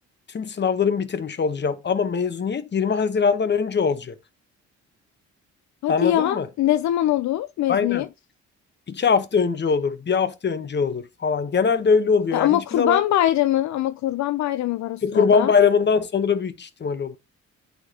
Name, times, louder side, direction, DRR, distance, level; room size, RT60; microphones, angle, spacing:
voice 1, 0.3-4.1 5.9-6.5 7.7-8.1 8.9-13.0 15.0-17.2, left 5 dB, 35° left, 1.0 m, -22 dB
voice 2, 5.8-8.1 12.3-15.5, left 13 dB, 65° left, 0.5 m, -22 dB
9.6 x 4.4 x 2.9 m
cardioid pair, 90°, 30 cm